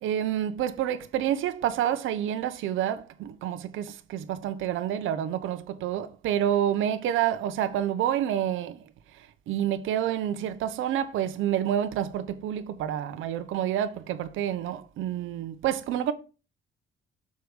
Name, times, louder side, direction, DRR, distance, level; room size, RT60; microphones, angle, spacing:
voice 1, 0.0-8.8 9.1-16.1, right 10 dB, 85° right, 0.9 m, -28 dB
6.8 x 4.7 x 4.9 m
cardioid pair, 90°, 20 cm